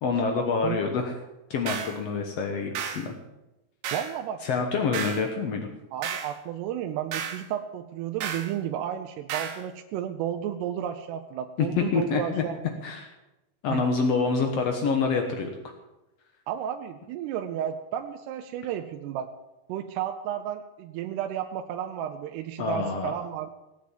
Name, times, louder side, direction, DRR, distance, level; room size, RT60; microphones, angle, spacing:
voice 1, 0.0-1.1 1.5-3.1 4.4-5.7 11.6-12.4 12.8-13.1 13.6-15.5 22.6-23.1, left 5 dB, 75° left, 4 dB, 1.4 m, -26 dB
sound 1, 1.7-2.0 2.7-3.1 3.8-4.2 4.9-5.3 6.0-6.3 7.1-7.4 8.2-8.5 9.3-9.6, right 7 dB, 65° right, 2.6 m, -33 dB
voice 2, 3.9-4.4 5.9-12.7 13.7-13.8 16.5-19.3 19.7-23.5, right 10 dB, 85° right, 5 dB, 2.9 m, -32 dB
18.5 x 8.8 x 7.4 m, 0.99 s
omnidirectional pair, 4.7 m